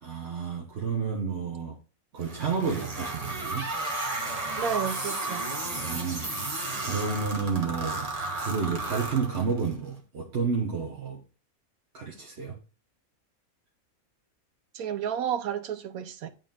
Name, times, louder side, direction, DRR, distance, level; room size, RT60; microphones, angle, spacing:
voice 1, 0.0-1.8 2.1-3.7 5.6-6.3 6.8-11.2 11.9-12.6, right 5 dB, 50° right, 1.3 m, -31 dB
sound 1, 2.2-9.7, right 2 dB, 25° right, 1.4 m, -33 dB
voice 2, 4.6-5.4 14.7-16.3, right 8 dB, 85° right, 1.2 m, -31 dB
11.0 x 3.8 x 3.7 m
omnidirectional pair, 1.5 m